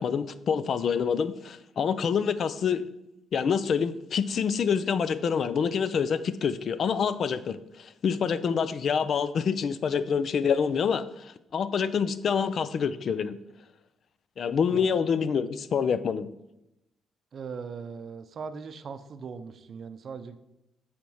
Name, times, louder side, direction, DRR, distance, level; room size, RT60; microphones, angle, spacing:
voice 1, 0.0-2.9 3.3-13.4 14.4-16.3, left 6 dB, 55° left, 14 dB, 0.5 m, -27 dB
voice 2, 17.3-20.4, right 5 dB, 55° right, 9 dB, 0.6 m, -39 dB
7.5 x 4.4 x 5.5 m, 0.87 s
cardioid pair, 90°, 0 cm